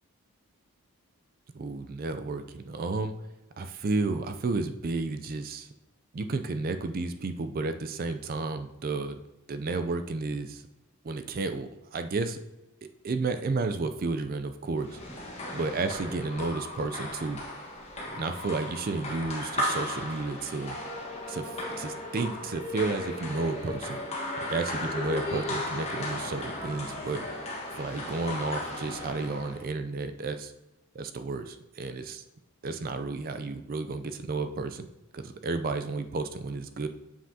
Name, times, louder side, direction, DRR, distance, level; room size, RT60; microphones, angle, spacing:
voice 1, 1.5-3.1 3.6-5.7 6.1-9.2 9.5-10.6 11.0-12.4 12.8-15.0 15.5-17.4 18.2-20.8 21.3-24.0 24.5-27.2 27.8-30.5 30.9-32.2 32.6-34.9 35.1-36.9, right 3 dB, 40° right, 8 dB, 0.4 m, -32 dB
sound 1, 14.8-29.7, left 1 dB, 30° left, 1.4 m, -35 dB
7.5 x 5.8 x 2.8 m, 0.96 s
head